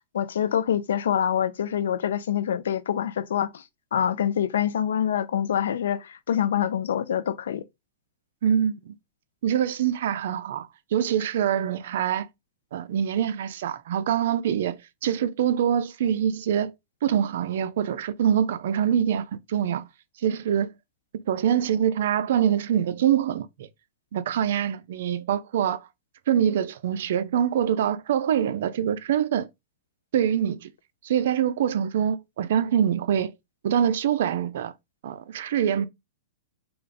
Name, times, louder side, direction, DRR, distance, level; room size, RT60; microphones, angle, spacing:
voice 1, 0.1-3.6 3.9-7.6, left 9 dB, 85° left, 0.5 m, -25 dB
voice 2, 8.4-9.0 9.4-12.3 12.7-16.7 17.0-19.9 20.2-20.7 21.3-23.7 24.1-25.9 26.3-29.5 30.1-30.7 31.0-33.3 33.6-34.7 35.0-35.9, right 9 dB, 70° right, 0.5 m, -24 dB
3.8 x 2.4 x 3.4 m
supercardioid pair, 150°, 0 cm